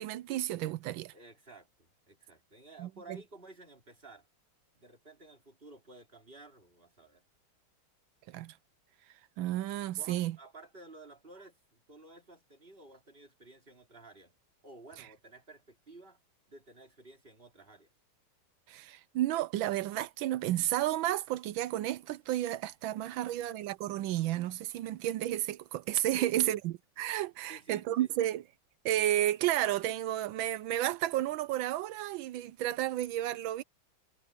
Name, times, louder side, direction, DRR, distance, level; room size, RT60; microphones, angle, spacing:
voice 1, 0.0-1.1 2.8-3.2 8.3-8.6 9.4-10.4 18.7-28.4 28.8-33.6, right 13 dB, 75° right, 1.3 m, -32 dB
voice 2, 1.1-4.3 4.7-7.3 10.0-14.4 14.6-16.2 16.5-17.9 23.1-23.5 26.2-26.6 27.5-28.2, right 2 dB, 25° right, 3.6 m, -53 dB
omnidirectional pair, 2.3 m